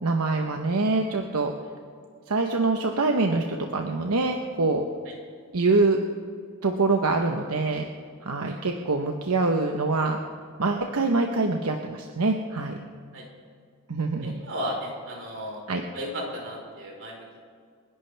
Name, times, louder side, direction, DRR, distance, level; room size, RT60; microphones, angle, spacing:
voice 1, 0.0-1.5 2.3-4.8 5.5-6.0 6.6-7.8 8.2-10.2 10.6-12.8 13.9-14.4 15.7-15.8, right 3 dB, 85° right, 3 dB, 1.0 m, -24 dB
voice 2, 14.2-15.6 15.9-17.4, equal, 60° right, -1 dB, 4.4 m, -35 dB
28.5 x 11.5 x 3.4 m, 2.1 s
head